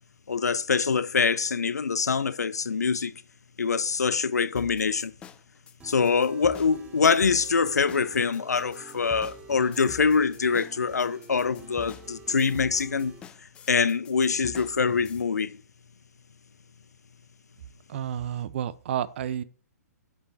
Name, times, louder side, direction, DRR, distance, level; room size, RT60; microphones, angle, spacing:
voice 1, 0.3-3.1 3.6-5.1 5.8-13.1 13.7-15.5, left 5 dB, 75° left, 0.5 m, -24 dB
sound 1, 4.6-15.2, left 8 dB, 10° left, 0.3 m, -47 dB
sound 2, 5.8-13.2, right 3 dB, 10° right, 1.0 m, -48 dB
voice 2, 17.9-19.4, right 10 dB, 45° right, 0.5 m, -30 dB
6.8 x 5.4 x 4.1 m
figure-of-eight pair, 120°, 9 cm